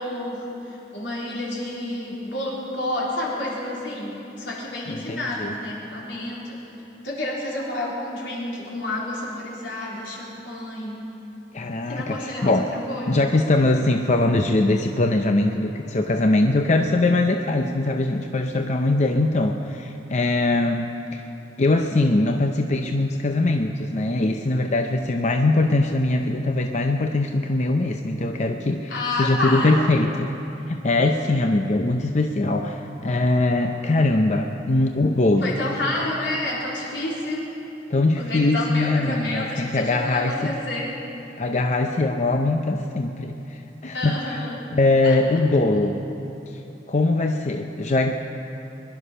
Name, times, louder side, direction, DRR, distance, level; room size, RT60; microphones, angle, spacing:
voice 1, 0.0-6.6 7.0-11.0 11.9-13.3 28.9-29.9 31.0-31.1 35.4-37.5 38.2-40.9 43.9-44.7 45.0-45.4, left 1 dB, 85° left, -5 dB, 4.0 m, -30 dB
voice 2, 4.9-5.5 11.5-12.7 13.1-21.2 21.6-28.9 29.2-30.3 30.7-35.6 37.9-40.5 41.4-44.2 44.7-46.0 46.9-48.1, left 2 dB, 40° left, 4 dB, 0.6 m, -22 dB
22.5 x 11.5 x 5.6 m, 3.0 s
head